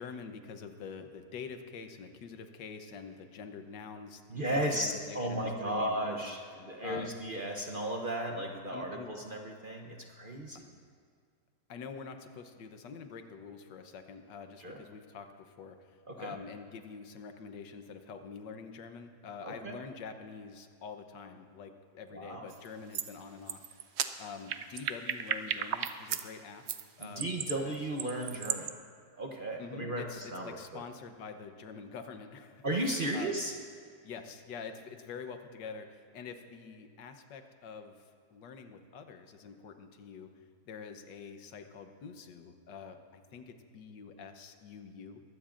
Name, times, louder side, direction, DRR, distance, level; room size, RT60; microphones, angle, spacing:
voice 1, 0.0-7.1 8.7-9.1 11.7-26.6 27.0-27.8 29.6-32.6 33.1-33.3 34.0-37.9 38.3-40.3 40.7-45.2, left 5 dB, 85° left, 7 dB, 1.6 m, -46 dB
voice 2, 4.3-10.7 14.6-14.8 16.1-16.3 19.4-19.8 22.1-22.5 27.0-28.7 29.2-30.1 30.3-30.8 32.6-33.5, right 1 dB, 40° right, 2 dB, 0.8 m, -35 dB
sound 1, 22.5-22.7 22.9-23.1 23.5-26.2 26.7-28.7, right 9 dB, 85° right, 0.5 m, -35 dB
22.0 x 15.5 x 2.5 m, 2.1 s
omnidirectional pair, 1.8 m